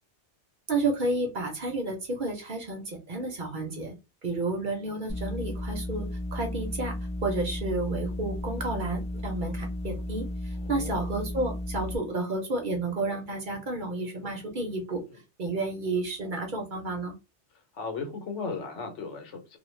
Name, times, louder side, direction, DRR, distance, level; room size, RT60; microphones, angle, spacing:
voice 1, 0.7-3.9 4.2-6.1 6.3-7.0 7.2-15.0 15.4-17.1, right 2 dB, 50° right, 2 dB, 0.8 m, -31 dB
sound 1, 5.1-12.0, left 1 dB, 5° left, 0.7 m, -34 dB
voice 2, 10.5-11.1 15.1-15.2 17.5-19.6, left 4 dB, 80° left, 5 dB, 1.1 m, -37 dB
2.4 x 2.1 x 3.1 m, 0.26 s
omnidirectional pair, 1.2 m